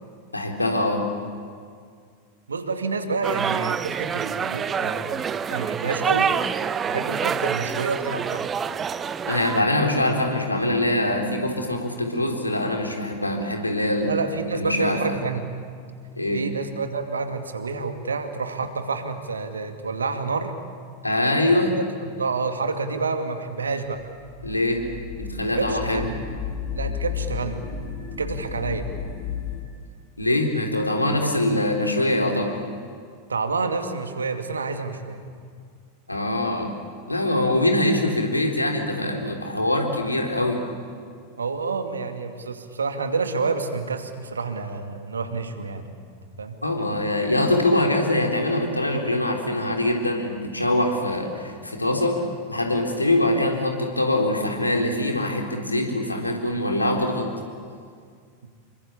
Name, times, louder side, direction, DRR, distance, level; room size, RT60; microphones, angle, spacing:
voice 1, 0.3-1.1 9.3-14.1 14.5-15.1 16.2-16.4 21.0-21.7 24.4-24.8 25.2-26.1 30.2-32.5 36.1-36.7 37.1-40.6 46.6-52.2 52.5-57.3, left 1 dB, 85° left, 2 dB, 3.8 m, -23 dB
voice 2, 2.5-6.3 6.8-8.5 14.0-15.4 16.3-20.5 22.0-24.0 25.4-26.2 26.7-27.6 28.2-28.9 31.2-31.3 33.3-35.2 41.4-46.0 46.4-46.6, right 4 dB, 75° right, 7 dB, 2.3 m, -28 dB
sound 1, 3.2-9.6, right 7 dB, 20° right, 0.8 m, -26 dB
sound 2, 24.0-29.6, left 7 dB, 25° left, 6.4 m, -33 dB
27.5 x 24.0 x 8.7 m, 2.1 s
figure-of-eight pair, 90°, 0 cm